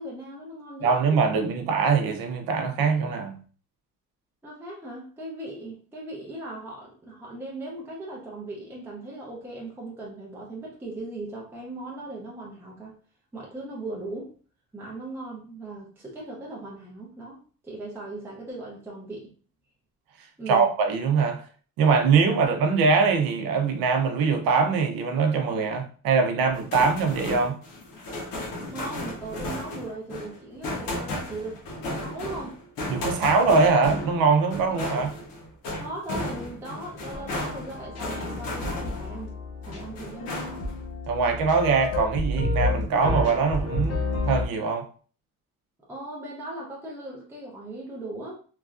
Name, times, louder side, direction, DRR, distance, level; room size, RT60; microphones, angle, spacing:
voice 1, 0.0-1.4 4.4-13.0 13.3-14.3 14.7-19.3 20.4-20.7 28.6-31.6 31.9-32.6 35.0-35.1 35.8-39.4 39.7-40.6 45.9-48.3, right 2 dB, 5° right, 0.5 m, -38 dB
voice 2, 0.8-3.4 20.5-21.4 21.8-27.6 32.9-35.1 41.1-44.9, right 5 dB, 85° right, 0.7 m, -22 dB
sound 1, 26.5-39.2 39.6-40.8, left 1 dB, 70° left, 1.0 m, -35 dB
sound 2, 37.1-44.5, left 2 dB, 45° left, 0.6 m, -30 dB
3.1 x 2.4 x 2.3 m
cardioid pair, 165°, 34 cm